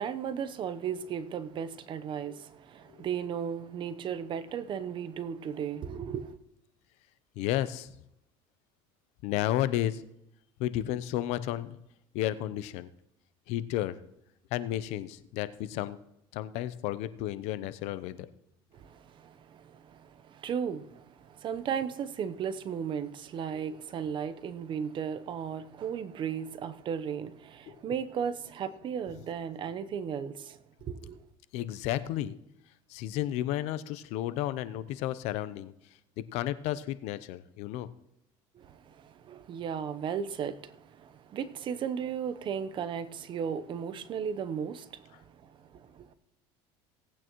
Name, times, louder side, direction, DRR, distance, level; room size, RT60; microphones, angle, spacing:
voice 1, 0.0-6.4 18.7-31.3 38.5-46.1, right 7 dB, 45° right, 0.9 m, -36 dB
voice 2, 7.4-7.9 9.2-10.0 10.6-11.8 12.1-12.9 13.5-14.0 14.5-16.0 16.3-18.3 23.5-23.8 27.7-27.8 31.5-32.3 32.9-35.7 36.3-37.9, left 13 dB, 70° left, 0.7 m, -32 dB
18.0 x 8.8 x 3.1 m
supercardioid pair, 105°, 12 cm